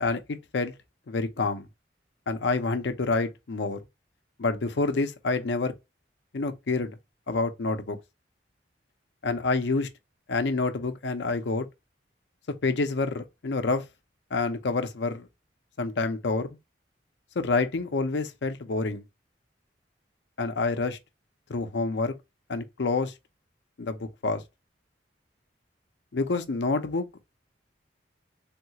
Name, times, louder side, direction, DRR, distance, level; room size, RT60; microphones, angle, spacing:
voice 1, 0.0-0.7 1.1-1.7 2.3-3.8 4.4-5.7 6.3-7.0 7.3-8.0 9.2-9.9 10.3-11.7 12.6-13.8 14.3-15.3 15.8-16.6 17.4-19.0 20.4-21.0 21.5-22.1 22.5-23.1 23.8-24.4 26.1-27.1, left 3 dB, 75° left, 0.6 m, -28 dB
3.6 x 2.3 x 2.8 m
head